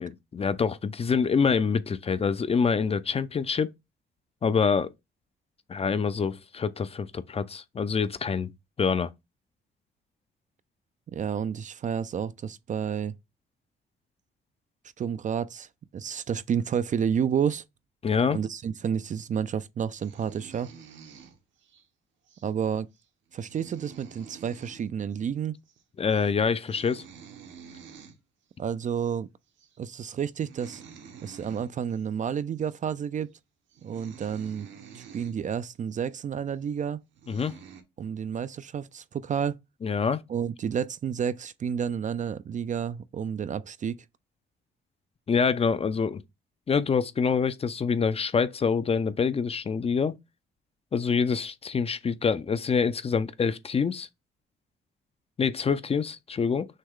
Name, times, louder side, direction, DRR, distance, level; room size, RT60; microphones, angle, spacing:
voice 1, 0.0-3.7 4.4-4.9 5.7-8.5 8.8-9.1 18.0-18.4 26.0-27.0 37.3-37.5 39.8-40.2 45.3-46.2 46.7-50.2 50.9-54.1 55.4-56.7, left 5 dB, 30° left, 0.5 m, -26 dB
voice 2, 11.1-13.1 15.0-17.6 18.3-20.7 22.4-22.9 23.3-25.5 28.6-29.3 29.8-30.8 31.2-33.3 33.8-34.7 34.9-37.0 38.0-39.6 40.3-44.0, right 8 dB, 40° right, 0.4 m, -30 dB
sound 1, 20.0-21.8 22.3-22.5 22.9-23.0 23.3-24.9 25.1-25.3 25.5-25.8 26.1-26.3 26.6-28.2 29.0-29.1 29.6-29.8 30.3-32.0 32.6-32.7 33.3-33.4 33.7-35.4 35.9-36.0 36.7-36.8 37.1-37.8, right 6 dB, 70° right, 1.1 m, -49 dB
6.4 x 2.3 x 3.6 m
cardioid pair, 90°, 20 cm